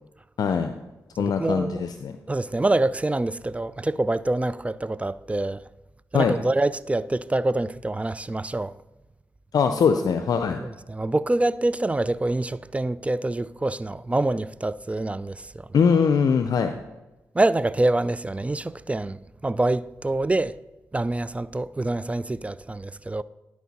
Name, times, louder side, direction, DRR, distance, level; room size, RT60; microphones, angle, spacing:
voice 1, 0.4-0.7 1.2-2.1 6.1-6.4 9.5-10.6 15.7-16.7, left 6 dB, 70° left, 0.5 m, -21 dB
voice 2, 1.2-1.8 2.3-5.6 6.1-8.7 10.6-15.4 17.3-20.5 20.9-23.2, right 2 dB, 20° right, 0.3 m, -25 dB
11.5 x 4.6 x 4.1 m
supercardioid pair, 40°, 7 cm